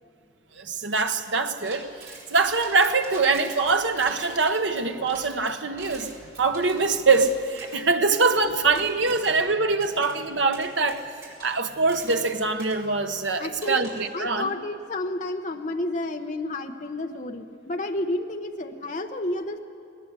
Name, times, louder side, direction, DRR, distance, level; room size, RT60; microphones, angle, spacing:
voice 1, 0.6-6.1 6.4-11.1 11.4-14.5, right 4 dB, 70° right, 6 dB, 1.2 m, -23 dB
sound 1, 1.6-7.8 8.2-8.4 8.7-9.5 9.8-10.1 10.5-12.3 12.6-12.7 13.6-14.1, right 3 dB, 55° right, 5.5 m, -44 dB
voice 2, 13.4-13.9 14.1-19.6, left 1 dB, 40° left, 4 dB, 0.9 m, -30 dB
19.5 x 19.0 x 8.3 m, 2.4 s
head